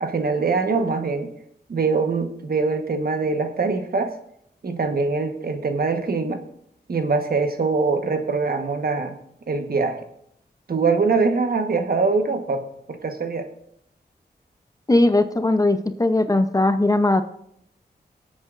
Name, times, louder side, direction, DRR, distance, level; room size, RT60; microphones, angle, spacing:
voice 1, 0.0-1.3 1.7-4.1 4.6-6.4 6.9-9.2 9.5-10.0 10.7-12.6 12.9-13.5, right 4 dB, 60° right, 6 dB, 1.3 m, -23 dB
voice 2, 14.9-17.2, left 2 dB, 20° left, 9 dB, 0.7 m, -19 dB
23.0 x 8.2 x 2.5 m, 0.74 s
cardioid pair, 70°, 18 cm